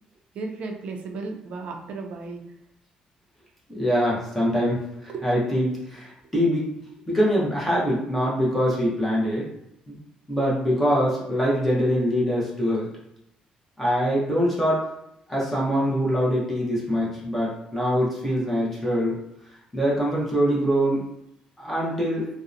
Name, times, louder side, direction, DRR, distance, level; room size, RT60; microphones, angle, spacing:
voice 1, 0.3-2.4 5.1-5.3, right 3 dB, 60° right, 3 dB, 0.4 m, -34 dB
voice 2, 3.7-6.7 7.1-9.5 9.9-10.0 10.3-12.9 13.8-14.9 15.3-19.2 19.7-21.0 21.6-22.3, equal, 5° left, -6 dB, 0.7 m, -24 dB
2.7 x 2.0 x 2.4 m, 0.81 s
cardioid pair, 145°, 2 cm